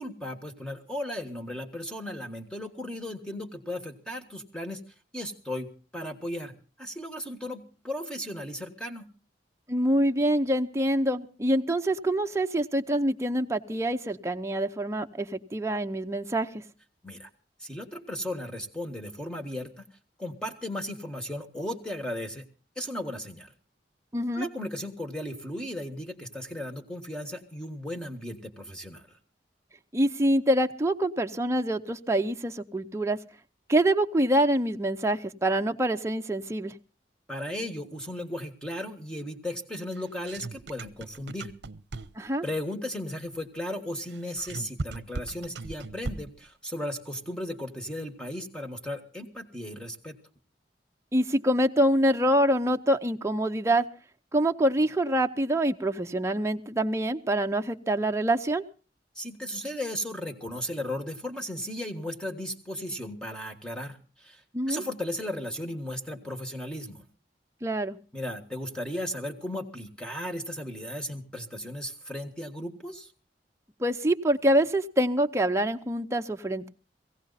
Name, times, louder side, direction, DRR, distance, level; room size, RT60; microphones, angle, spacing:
voice 1, 0.0-4.8 5.1-6.5 6.8-9.1 17.0-17.3 17.6-19.8 20.2-22.4 22.7-23.5 24.3-29.2 37.3-41.5 42.4-50.2 59.1-64.4 64.7-67.1 68.1-73.1, left 1 dB, 5° left, 5 dB, 1.6 m, -36 dB
voice 2, 9.7-16.6 24.1-24.5 29.9-33.2 33.7-36.7 42.2-42.4 51.1-53.9 54.3-58.6 64.5-64.8 67.6-68.0 73.8-76.7, right 1 dB, 15° right, 5 dB, 0.7 m, -25 dB
sound 1, 39.9-42.4 44.0-46.5, right 3 dB, 75° right, 0.7 m, -38 dB
17.0 x 16.5 x 4.1 m, 0.36 s
head